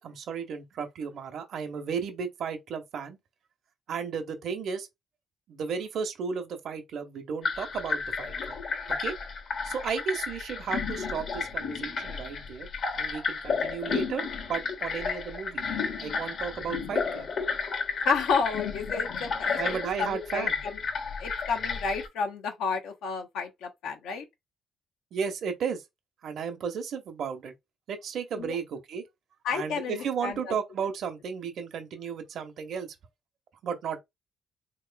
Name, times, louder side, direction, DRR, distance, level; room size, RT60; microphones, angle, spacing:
voice 1, 0.0-3.2 3.9-4.9 5.5-8.6 9.0-9.1 9.6-12.7 13.0-15.7 16.0-17.3 19.6-20.6 25.1-25.8 26.2-27.5 27.9-29.0 29.5-32.9 33.6-34.0, right 6 dB, 70° right, 0.9 m, -34 dB
sound 1, 7.4-22.1, left 5 dB, 65° left, 1.1 m, -32 dB
voice 2, 18.0-20.5 21.2-24.2 28.4-28.5 29.4-30.5, left 5 dB, 85° left, 0.8 m, -31 dB
3.7 x 3.0 x 2.3 m
cardioid pair, 90°, 0 cm